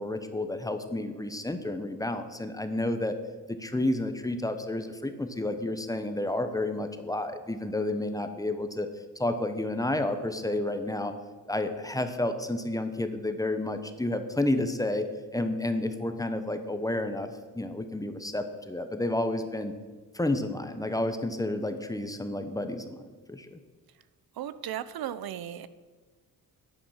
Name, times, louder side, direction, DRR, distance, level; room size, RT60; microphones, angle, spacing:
voice 1, 0.0-3.2 3.5-8.9 9.2-11.1 11.5-15.0 15.3-19.7 20.1-23.0 23.3-23.6, left 1 dB, 10° left, 8 dB, 0.9 m, -30 dB
voice 2, 24.3-25.7, right 11 dB, 80° right, 14 dB, 0.7 m, -36 dB
10.0 x 9.1 x 6.4 m, 1.4 s
cardioid pair, 120°, 36 cm